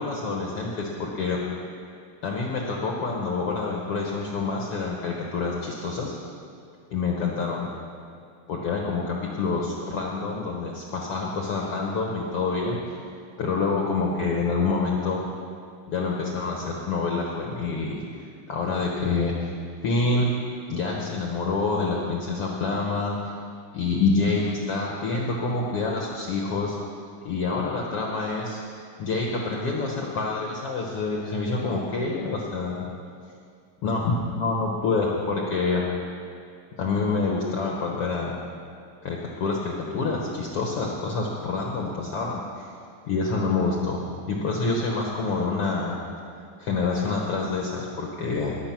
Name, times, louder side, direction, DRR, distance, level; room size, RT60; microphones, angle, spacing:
voice 1, 0.0-1.4 2.2-6.2 6.9-7.7 8.5-12.8 13.4-15.2 15.9-18.0 18.5-19.3 19.8-20.3 20.7-23.1 23.7-26.8 27.2-28.6 29.0-32.8 33.8-35.9 36.8-38.4 39.0-42.7 43.1-44.0 44.3-46.0 46.6-48.5, left 3 dB, 60° left, -1 dB, 1.8 m, -27 dB
19.5 x 7.6 x 6.0 m, 2.3 s
omnidirectional pair, 3.8 m